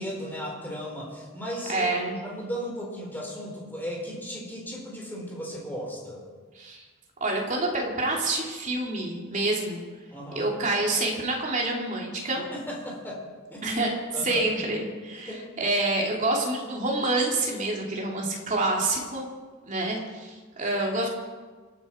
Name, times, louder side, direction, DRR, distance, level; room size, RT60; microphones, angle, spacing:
voice 1, 0.0-6.3 10.1-10.5 12.3-13.2 13.5-13.6 14.1-14.5 15.3-15.5, equal, 10° left, -2 dB, 4.3 m, -36 dB
voice 2, 1.7-2.2 6.5-6.8 7.2-9.8 10.3-12.4 13.6-13.9 14.2-19.3 19.7-21.1, right 2 dB, 35° right, -2 dB, 3.1 m, -27 dB
27.5 x 9.6 x 4.6 m, 1.4 s
head